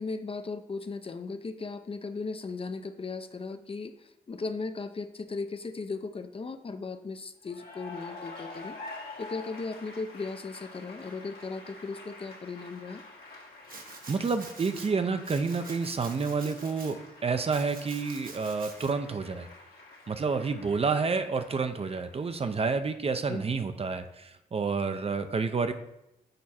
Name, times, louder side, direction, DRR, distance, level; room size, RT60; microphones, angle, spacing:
voice 1, 0.0-8.8 9.2-13.0 23.3-23.5, left 4 dB, 35° left, 8 dB, 0.6 m, -37 dB
Cheering / Applause, 7.4-22.4, left 2 dB, 75° left, 1.6 m, -48 dB
Domestic sounds home sounds, 13.7-14.9 15.2-16.9 17.5-18.9, right 4 dB, 65° right, 1.0 m, -47 dB
voice 2, 14.1-19.5 20.1-25.7, right 4 dB, 40° right, 8 dB, 0.6 m, -29 dB
6.6 x 4.6 x 4.2 m, 0.86 s
cardioid pair, 55°, 16 cm